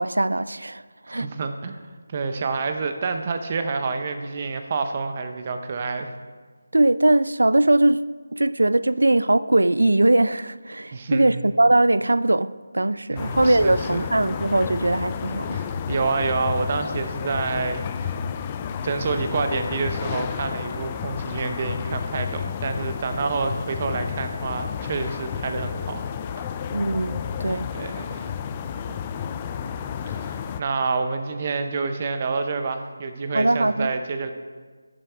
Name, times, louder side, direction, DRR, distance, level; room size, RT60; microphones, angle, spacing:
voice 1, 0.0-1.3 6.7-15.6 26.7-27.7 33.3-33.9, right 2 dB, 90° right, 0.4 m, -21 dB
voice 2, 1.1-1.8 2.1-6.1 10.9-11.4 13.1-14.1 15.5-18.2 18.8-26.0 27.7-28.3 28.7-28.9 30.1-34.3, right 4 dB, 30° right, 0.7 m, -28 dB
sound 1, 13.2-30.6, left 7 dB, 20° left, 0.3 m, -31 dB
10.5 x 10.0 x 3.4 m
figure-of-eight pair, 170°, 0 cm